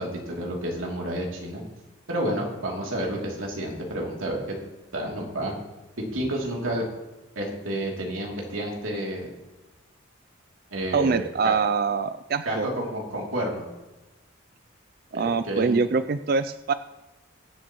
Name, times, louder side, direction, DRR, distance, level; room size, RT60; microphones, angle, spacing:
voice 1, 0.0-1.6 2.1-4.5 4.9-5.5 6.1-6.8 7.3-9.3 10.7-11.6 12.4-13.6 15.1-15.8, right 1 dB, 80° right, -2 dB, 2.9 m, -30 dB
voice 2, 10.9-12.7 15.1-16.7, right 5 dB, 45° right, 11 dB, 0.3 m, -24 dB
21.5 x 8.2 x 3.1 m, 1.1 s
head